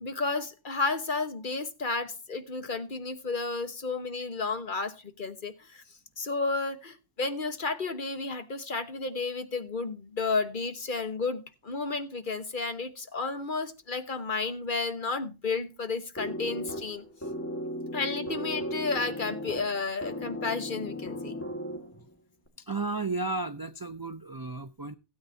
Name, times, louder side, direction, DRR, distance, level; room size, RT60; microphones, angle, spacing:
voice 1, 0.0-5.8 6.2-17.0 17.9-21.4, left 4 dB, 45° left, 1.3 m, -32 dB
sound 1, 16.2-22.1, equal, 10° left, 1.9 m, -36 dB
voice 2, 22.6-25.0, right 3 dB, 30° right, 0.4 m, -33 dB
16.5 x 8.6 x 2.7 m
omnidirectional pair, 1.3 m